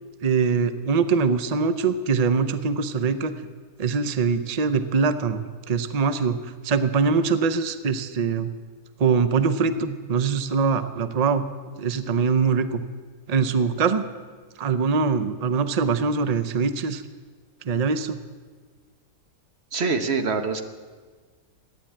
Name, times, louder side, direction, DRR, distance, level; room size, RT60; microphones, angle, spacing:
voice 1, 0.2-3.3 3.8-8.5 9.0-11.5 11.8-12.8 13.3-14.1 14.6-17.0 17.6-18.2, right 5 dB, 75° right, 10 dB, 0.3 m, -23 dB
voice 2, 19.7-20.6, right 4 dB, 45° right, 7 dB, 1.2 m, -24 dB
14.5 x 10.5 x 8.8 m, 1.5 s
omnidirectional pair, 1.7 m